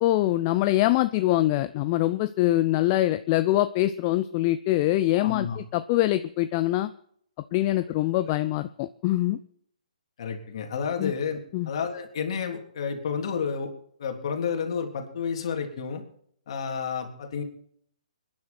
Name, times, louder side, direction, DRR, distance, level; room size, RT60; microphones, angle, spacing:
voice 1, 0.0-6.9 7.5-9.4 11.0-11.1 11.5-11.7, left 15 dB, 30° left, 12 dB, 0.6 m, -24 dB
voice 2, 5.1-5.6 8.2-8.3 10.2-11.4 11.7-13.7 14.0-16.0 16.5-17.4, left 6 dB, 50° left, 3 dB, 3.4 m, -30 dB
26.5 x 10.5 x 4.5 m, 0.65 s
figure-of-eight pair, 130°, 4 cm